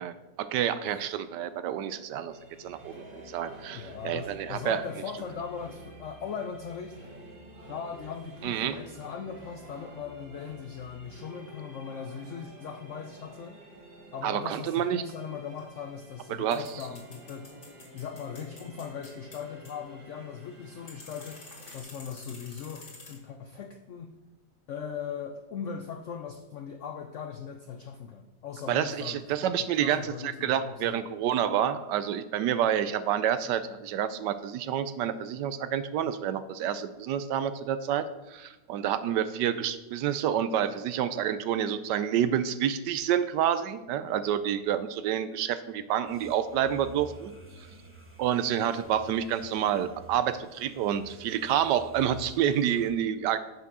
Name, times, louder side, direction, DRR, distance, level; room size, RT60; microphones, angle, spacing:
voice 1, 0.0-2.3 2.6-4.8 8.4-8.8 14.2-15.0 16.3-16.6 28.7-47.3 48.2-53.4, right 9 dB, 75° right, 13 dB, 1.1 m, -28 dB
sound 1, 2.3-21.8, right 1 dB, 30° right, 1.6 m, -50 dB
voice 2, 3.7-7.0 7.7-13.6 14.1-17.5 17.9-21.4 21.7-24.1 24.7-31.1, left 7 dB, 75° left, 6 dB, 0.7 m, -39 dB
sound 2, 15.0-23.2, left 2 dB, 45° left, 2.5 m, -51 dB
sound 3, 46.1-52.9, right 1 dB, 10° right, 1.0 m, -51 dB
7.4 x 5.8 x 6.1 m, 1.0 s
omnidirectional pair, 2.0 m